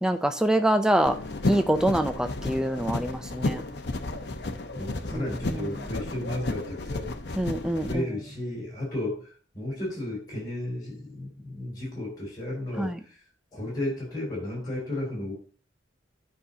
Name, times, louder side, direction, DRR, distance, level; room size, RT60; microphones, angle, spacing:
voice 1, 0.0-1.2 1.5-3.6 5.1-5.2 5.5-5.7 7.4-8.0 12.8-13.0, right 1 dB, 5° right, 0.4 m, -25 dB
sound 1, 1.0-7.9, left 2 dB, 65° left, 0.9 m, -32 dB
voice 2, 4.7-7.1 7.8-9.3 9.5-13.2 13.5-15.3, left 1 dB, 20° left, 4.7 m, -33 dB
12.5 x 5.5 x 2.8 m
head